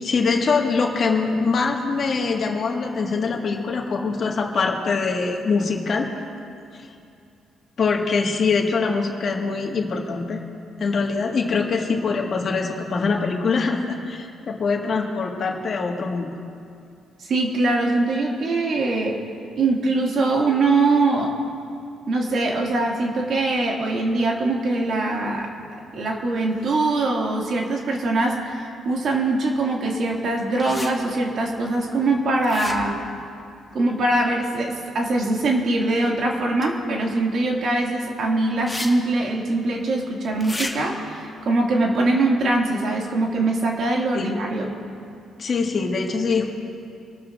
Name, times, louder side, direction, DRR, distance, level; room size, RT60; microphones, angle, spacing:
voice 1, 0.0-6.1 6.7-6.9 7.8-10.4 10.8-16.3 44.1-44.3 45.4-46.4, left 4 dB, 50° left, 1 dB, 1.8 m, -23 dB
voice 2, 17.2-19.2 19.5-21.3 22.1-25.5 25.9-33.0 33.7-44.8, right 2 dB, 60° right, -1 dB, 2.3 m, -22 dB
sound 1, 30.6-30.9 32.4-33.0 36.6-36.7 38.7-38.9 39.2-39.3 40.4-40.7, left 2 dB, 10° left, 1.6 m, -31 dB
25.0 x 13.0 x 2.6 m, 2.5 s
cardioid pair, 90°, 0 cm